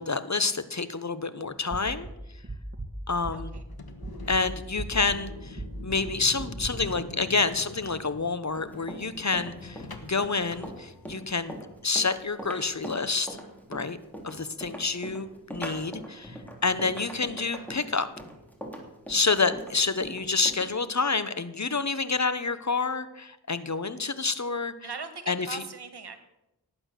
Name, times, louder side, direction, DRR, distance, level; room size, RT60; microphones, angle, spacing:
voice 1, 0.0-2.1 3.1-3.5 4.3-11.5 11.8-13.4 13.7-14.0 14.2-18.1 19.1-24.9 25.3-25.6, left 4 dB, 45° left, 12 dB, 1.0 m, -28 dB
sound 1, 1.7-3.8 4.0-6.7, right 1 dB, 30° right, 2.0 m, -37 dB
voice 2, 3.3-3.6 24.8-26.2, right 5 dB, 90° right, 9 dB, 1.5 m, -39 dB
sound 2, 3.6-11.4, left 2 dB, 70° left, 1.6 m, -45 dB
Run, 8.5-20.7, equal, 5° left, 3.3 m, -41 dB
18.5 x 8.6 x 6.7 m, 0.93 s
wide cardioid pair, 50°, 39 cm